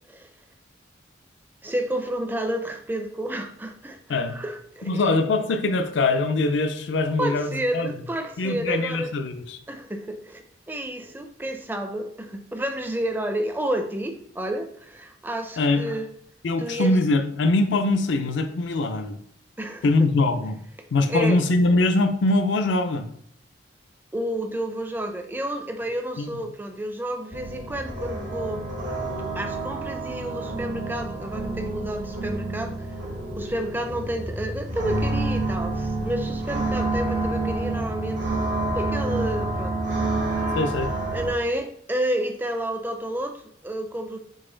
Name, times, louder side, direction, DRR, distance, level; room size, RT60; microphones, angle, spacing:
voice 1, 1.6-5.1 7.2-9.1 9.7-16.1 16.6-17.0 19.6-19.9 21.1-21.4 24.1-28.7 29.4-32.9 33.4-38.2 38.7-39.8 40.4-40.6 41.1-44.2, right 1 dB, 10° right, 5 dB, 0.4 m, -30 dB
voice 2, 4.8-7.9 8.4-9.6 15.6-15.8 16.4-19.2 19.8-20.6 20.9-23.1 26.2-26.4 40.5-40.9, left 2 dB, 75° left, 7 dB, 0.4 m, -22 dB
sound 1, 27.3-41.3, right 2 dB, 80° right, 1.1 m, -28 dB
4.0 x 3.2 x 3.8 m, 0.68 s
head